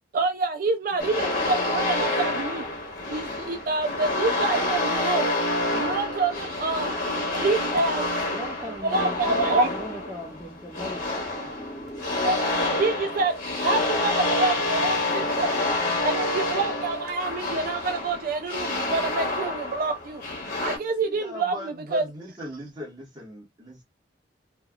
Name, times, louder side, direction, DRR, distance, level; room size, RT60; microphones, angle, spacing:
voice 1, 0.1-2.6 3.1-5.3 5.7-7.0 7.3-8.1 8.6-9.7 12.2-13.3 13.6-15.5 16.0-20.2 20.6-22.0, right 3 dB, 50° right, 0.4 m, -27 dB
sound 1, 1.0-20.8, left 2 dB, 55° left, 1.2 m, -28 dB
voice 2, 8.3-12.1, left 1 dB, ahead, 0.5 m, -39 dB
voice 3, 21.0-23.8, equal, 25° right, 1.3 m, -39 dB
3.2 x 2.3 x 2.3 m
head